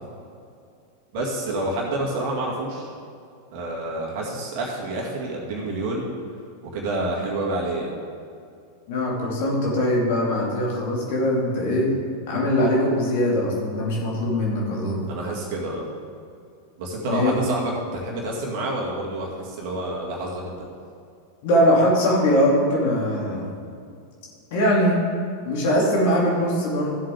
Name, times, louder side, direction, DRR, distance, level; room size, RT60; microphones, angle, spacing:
voice 1, 1.1-2.9 3.5-6.1 6.6-7.9 15.1-15.9 16.8-20.7, right 2 dB, 45° right, -2 dB, 2.1 m, -28 dB
voice 2, 8.9-11.9 12.3-15.0 17.1-17.4 21.4-23.5 24.5-25.0 25.4-26.9, equal, 50° left, -3 dB, 2.6 m, -21 dB
14.0 x 7.6 x 3.6 m, 2.4 s
figure-of-eight pair, 90°, 0 cm